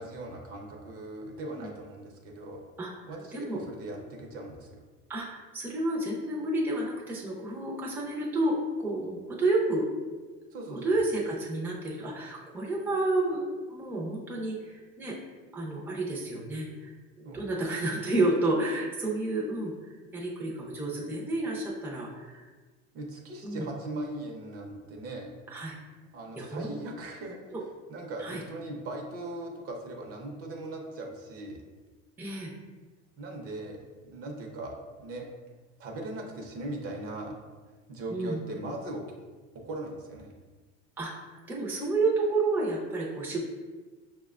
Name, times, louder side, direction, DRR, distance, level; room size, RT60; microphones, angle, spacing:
voice 1, 0.0-2.6 3.1-4.8 10.5-11.0 17.2-17.5 22.9-25.3 26.1-27.6 27.9-31.6 33.2-35.3 35.8-37.3 37.7-39.0 39.5-40.3, right 2 dB, 45° right, 1 dB, 0.7 m, -39 dB
voice 2, 2.8-3.6 5.1-9.9 10.7-15.1 15.5-16.9 17.3-22.5 23.4-23.7 25.5-25.7 26.4-26.8 27.5-27.6 28.2-28.4 32.2-32.5 38.1-38.4 41.0-43.4, right 2 dB, 5° right, -4 dB, 0.5 m, -30 dB
5.6 x 2.2 x 2.4 m, 1.3 s
cardioid pair, 135°, 31 cm